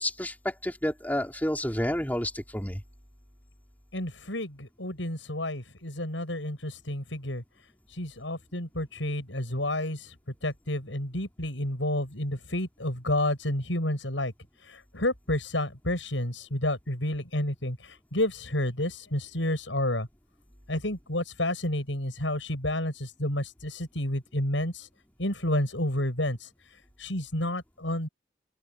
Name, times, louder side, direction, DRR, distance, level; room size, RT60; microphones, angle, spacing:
voice 1, 0.0-2.8, left 1 dB, 10° left, 3.4 m, -30 dB
voice 2, 3.9-7.4 7.9-10.1 10.4-14.3 14.7-20.1 20.7-24.9 25.2-26.5 27.0-28.1, left 1 dB, 85° left, 7.7 m, -30 dB
open air
head